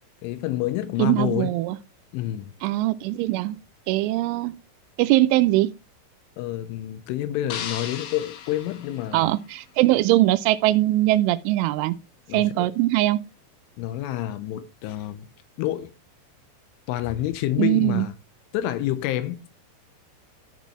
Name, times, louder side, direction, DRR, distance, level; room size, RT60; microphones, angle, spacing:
voice 1, 0.2-1.5 2.1-2.5 6.4-9.4 12.3-12.7 13.8-15.3 15.6-15.9 16.9-18.1 18.5-19.6, left 13 dB, 90° left, 3.3 m, -28 dB
voice 2, 1.0-1.8 2.6-3.6 3.9-4.5 5.0-5.7 9.1-12.0 12.3-13.2 17.6-18.1, right 16 dB, 85° right, 3.0 m, -21 dB
sound 1, 7.5-9.8, left 8 dB, 70° left, 2.5 m, -37 dB
13.5 x 5.4 x 3.1 m
omnidirectional pair, 5.5 m